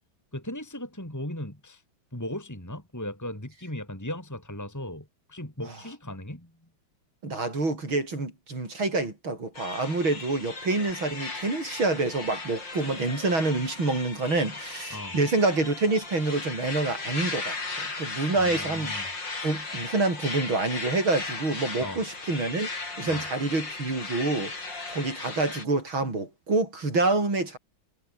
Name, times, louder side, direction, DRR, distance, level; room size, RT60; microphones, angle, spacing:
voice 1, 0.3-1.8 2.1-6.5 14.9-15.2 18.4-19.1 21.8-22.0 23.1-23.2, left 1 dB, 10° left, 3.9 m, -37 dB
voice 2, 7.2-19.0 19.4-27.6, right 3 dB, 80° right, 7.6 m, -27 dB
sound 1, 9.5-25.6, left 3 dB, 65° left, 5.5 m, -36 dB
omnidirectional pair, 2.2 m